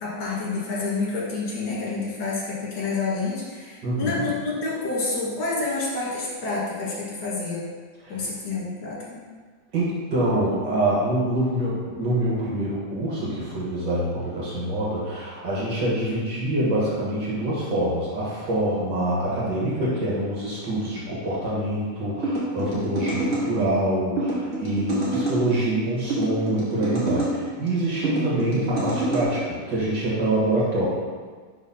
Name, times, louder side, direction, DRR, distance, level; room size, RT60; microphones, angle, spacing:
voice 1, 0.0-7.6 8.1-9.2, left 3 dB, 70° left, -5 dB, 2.4 m, -28 dB
voice 2, 3.8-4.3 8.0-8.2 9.7-30.9, right 1 dB, 75° right, -6 dB, 2.1 m, -25 dB
sound 1, 22.2-23.5 24.2-25.4 26.1-27.3 28.0-29.2, right 2 dB, 40° right, 1.9 m, -27 dB
5.0 x 4.0 x 5.6 m, 1.5 s
omnidirectional pair, 2.0 m